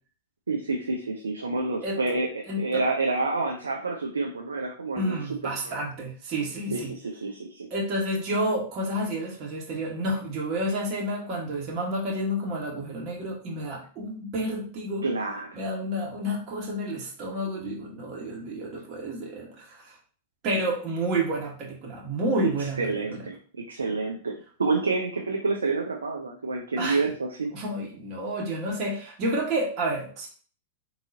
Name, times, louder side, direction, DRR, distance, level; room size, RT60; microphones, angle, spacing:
voice 1, 0.5-5.2 5.6-5.8 6.7-7.7 15.0-15.5 22.6-27.5, right 3 dB, 80° right, 1 dB, 0.5 m, -28 dB
voice 2, 2.5-2.8 5.0-6.9 7.7-15.0 15.5-19.9 20.4-23.0 26.8-27.0 27.5-30.3, right 1 dB, 40° right, -2 dB, 1.4 m, -30 dB
3.8 x 2.7 x 2.7 m, 0.42 s
figure-of-eight pair, 100°, 0 cm